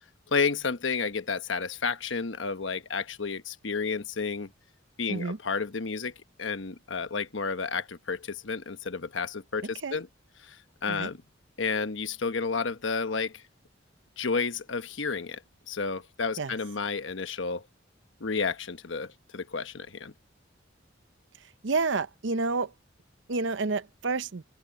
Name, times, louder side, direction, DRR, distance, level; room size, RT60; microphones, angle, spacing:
voice 1, 0.3-4.5 5.0-6.1 6.4-10.1 10.4-10.5 10.8-11.2 11.6-13.3 14.2-15.4 15.7-17.6 18.2-20.1, left 5 dB, 70° left, 1.1 m, -31 dB
voice 2, 21.6-22.7 23.3-24.4, right 3 dB, 70° right, 0.8 m, -29 dB
head